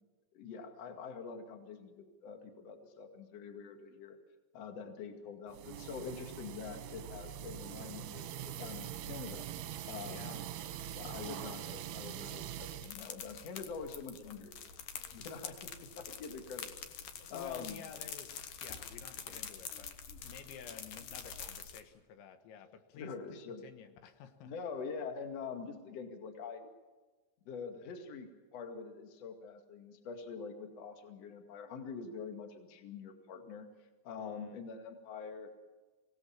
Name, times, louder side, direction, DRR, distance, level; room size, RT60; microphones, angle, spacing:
voice 1, 0.3-4.2 4.5-9.5 9.9-10.4 10.9-14.5 15.1-16.9 17.3-17.8 23.0-23.7 24.4-26.7 27.5-33.7 34.0-35.6, left 5 dB, 45° left, 5 dB, 2.6 m, -45 dB
sound 1, 5.5-12.9, right 10 dB, 70° right, 2.4 m, -43 dB
voice 2, 10.1-10.4 10.9-11.0 17.2-19.9 20.2-24.5 34.2-34.6, left 7 dB, 80° left, 8 dB, 3.5 m, -52 dB
sound 2, 12.8-21.8, left 7 dB, 60° left, 2.4 m, -46 dB
25.5 x 18.0 x 7.3 m, 1.2 s
omnidirectional pair, 5.4 m